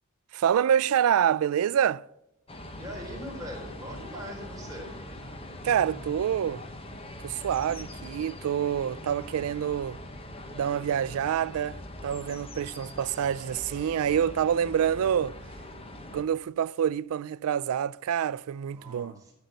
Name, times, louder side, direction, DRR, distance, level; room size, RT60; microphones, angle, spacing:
voice 1, 0.3-2.0 5.6-6.6 7.2-10.0 10.5-15.4 16.1-19.2, right 9 dB, 75° right, 0.3 m, -27 dB
sound 1, 2.5-16.2, left 1 dB, 25° left, 1.1 m, -42 dB
voice 2, 2.7-5.0 18.7-19.3, equal, 15° right, 3.9 m, -41 dB
12.0 x 6.5 x 7.8 m
head